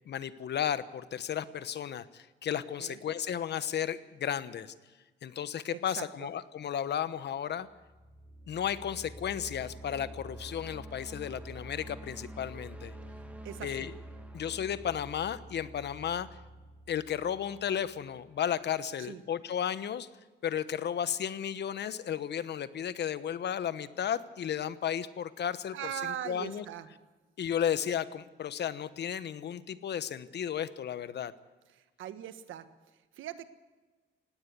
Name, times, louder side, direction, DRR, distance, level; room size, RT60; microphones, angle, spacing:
voice 1, 0.1-4.7 5.2-7.7 8.5-12.9 13.6-13.9 14.3-16.3 16.9-20.1 20.4-25.7 26.3-26.6 27.4-31.3, left 9 dB, 60° left, 14 dB, 1.1 m, -34 dB
voice 2, 5.9-6.3 13.4-13.9 19.0-19.2 25.7-26.9 31.7-33.5, right 10 dB, 80° right, 10 dB, 1.5 m, -41 dB
sound 1, 7.7-18.4, right 1 dB, 5° right, 2.4 m, -47 dB
19.0 x 17.5 x 8.3 m, 1.2 s
cardioid pair, 90°, 20 cm